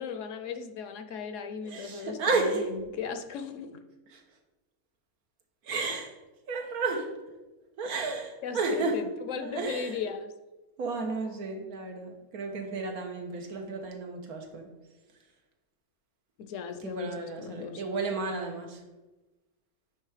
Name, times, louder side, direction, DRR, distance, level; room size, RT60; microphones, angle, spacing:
voice 1, 0.0-3.8 8.4-10.3 16.4-17.8, left 6 dB, 70° left, 0.9 m, -37 dB
voice 2, 1.6-2.7 4.1-4.2 5.6-6.1 6.5-7.2 7.8-9.0 9.4-10.0 10.8-14.7 16.8-18.8, right 3 dB, 90° right, 1.5 m, -32 dB
9.2 x 3.5 x 4.9 m
omnidirectional pair, 1.5 m